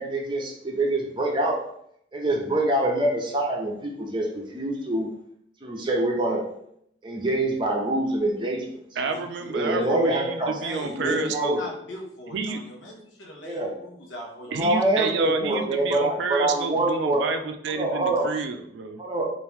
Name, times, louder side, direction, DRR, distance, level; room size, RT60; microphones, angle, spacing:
voice 1, 0.0-1.6 2.1-5.1 5.6-6.4 7.0-8.7 9.5-10.5 10.9-11.6 13.4-13.7 14.5-17.2 17.7-18.3 19.0-19.3, right 1 dB, 25° right, 0 dB, 0.6 m, -25 dB
voice 2, 9.0-11.7 12.3-12.6 14.5-19.0, right 4 dB, 75° right, 7 dB, 0.4 m, -30 dB
voice 3, 10.6-11.2 11.6-15.6, left 1 dB, 85° left, 0 dB, 0.8 m, -40 dB
3.0 x 2.5 x 3.4 m, 0.69 s
head